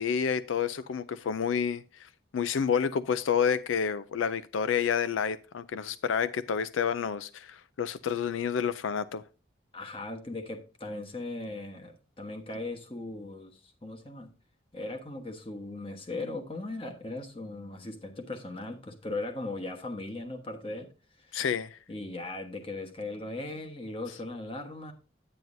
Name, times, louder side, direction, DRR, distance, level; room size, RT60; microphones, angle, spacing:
voice 1, 0.0-9.2 21.3-21.8, left 7 dB, 90° left, 0.4 m, -29 dB
voice 2, 9.7-14.3 14.7-20.9 21.2-21.4 21.9-24.9, left 2 dB, 30° left, 1.2 m, -38 dB
9.4 x 9.1 x 2.6 m
head